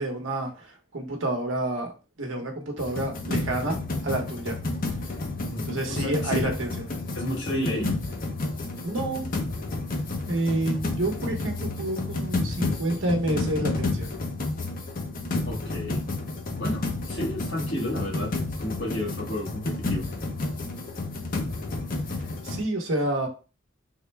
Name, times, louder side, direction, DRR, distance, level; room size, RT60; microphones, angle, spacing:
voice 1, 0.0-1.9 2.2-4.6 5.6-6.7 8.8-9.3 10.3-14.1 22.4-23.3, right 1 dB, 85° right, 1 dB, 1.0 m, -29 dB
sound 1, 2.8-22.6, left 2 dB, 45° left, 0.6 m, -31 dB
voice 2, 5.5-6.5 7.1-7.9 15.4-16.0 16.5-20.1, left 1 dB, 70° left, -2 dB, 1.3 m, -32 dB
3.6 x 2.1 x 3.2 m, 0.33 s
head